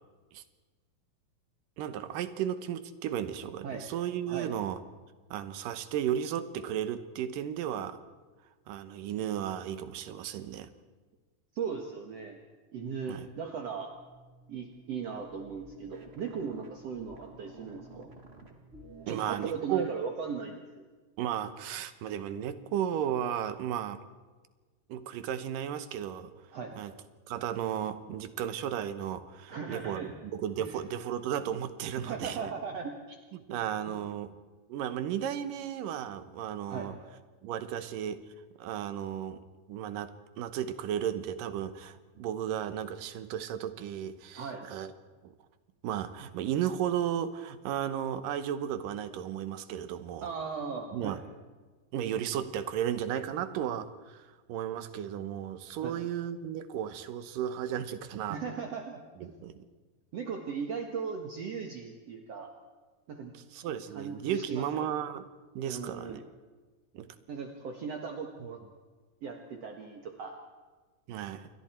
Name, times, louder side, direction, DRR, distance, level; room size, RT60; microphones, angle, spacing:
voice 1, 1.8-4.8 5.3-8.0 8.7-10.7 13.1-13.3 19.1-19.9 21.2-24.0 24.9-26.3 26.8-26.9 27.3-32.5 33.3-34.3 34.7-37.0 37.4-38.2 38.6-44.9 45.2-45.3 45.8-50.3 50.9-51.2 51.9-58.4 59.2-59.6 63.5-65.3 65.6-66.2 66.9-67.2 71.1-71.5, right 10 dB, 75° right, 11 dB, 2.7 m, -34 dB
voice 2, 11.5-12.4 12.7-13.9 14.5-18.1 19.1-20.9 26.5-26.7 29.5-30.1 30.6-30.8 32.0-33.2 33.5-33.6 33.9-34.0 36.7-36.9 44.3-44.6 50.2-51.2 55.8-56.0 58.3-59.3 60.1-62.5 63.1-63.3 63.9-64.9 65.7-66.2 67.3-68.6 69.2-70.4, right 6 dB, 55° right, 3 dB, 2.3 m, -38 dB
sound 1, 13.8-19.6, right 2 dB, 25° right, 1.5 m, -53 dB
28.5 x 22.5 x 4.5 m, 1.3 s
omnidirectional pair, 4.0 m